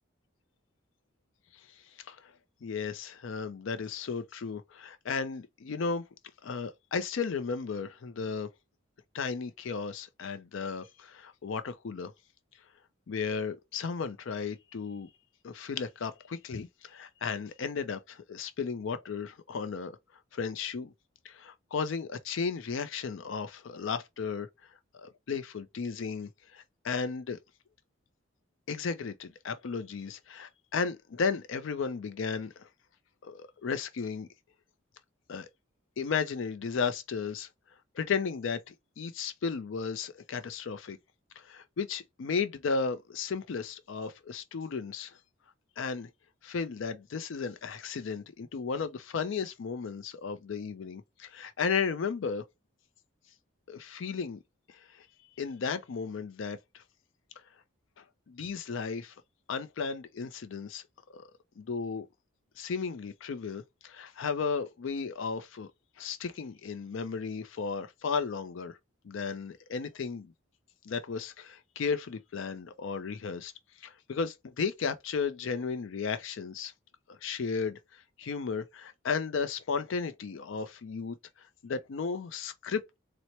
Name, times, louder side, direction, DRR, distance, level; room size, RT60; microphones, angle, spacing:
voice 1, 2.6-6.0 6.4-8.5 9.1-12.1 13.1-15.1 15.4-20.0 20.3-20.9 21.2-24.5 25.0-27.4 28.7-32.7 33.2-34.3 35.3-35.5 36.0-37.5 37.9-41.0 41.4-45.2 45.8-46.1 46.4-52.4 53.7-54.4 54.7-55.1 55.4-56.8 58.0-59.1 59.5-60.8 61.1-61.3 61.6-62.1 62.6-65.7 66.0-68.8 69.0-70.3 70.8-73.5 73.8-76.7 77.1-83.0, left 5 dB, 65° left, 0.4 m, -34 dB
4.2 x 2.0 x 2.8 m
head